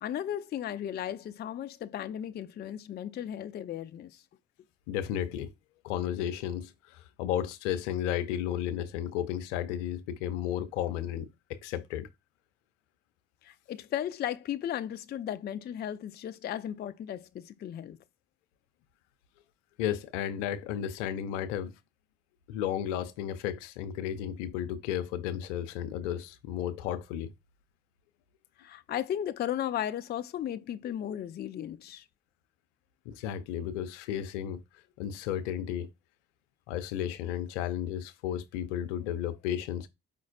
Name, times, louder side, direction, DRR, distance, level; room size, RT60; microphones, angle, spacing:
voice 1, 0.0-4.2 13.4-18.0 28.6-32.0, left 10 dB, 30° left, 0.4 m, -35 dB
voice 2, 4.9-5.5 5.8-12.1 19.8-21.7 22.5-27.3 33.1-34.6 35.0-35.9 36.7-39.9, left 10 dB, 75° left, 0.6 m, -33 dB
5.1 x 3.8 x 2.5 m
hypercardioid pair, 45°, 37 cm